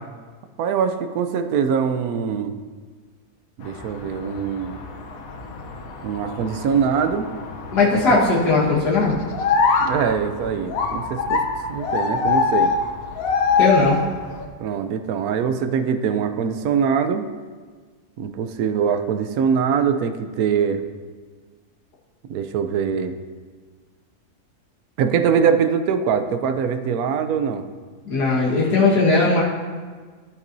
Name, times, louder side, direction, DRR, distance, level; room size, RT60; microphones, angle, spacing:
voice 1, 0.6-2.6 3.6-4.8 6.0-7.3 9.8-11.4 11.7-12.7 14.6-17.2 18.2-20.8 22.3-23.2 25.0-27.7, right 7 dB, 70° right, 9 dB, 1.1 m, -22 dB
sound 1, 3.6-14.4, left 5 dB, 65° left, 1.2 m, -25 dB
voice 2, 7.7-9.2 13.6-14.0 28.1-29.4, left 3 dB, 90° left, -6 dB, 2.1 m, -18 dB
12.0 x 8.3 x 2.7 m, 1.5 s
omnidirectional pair, 1.7 m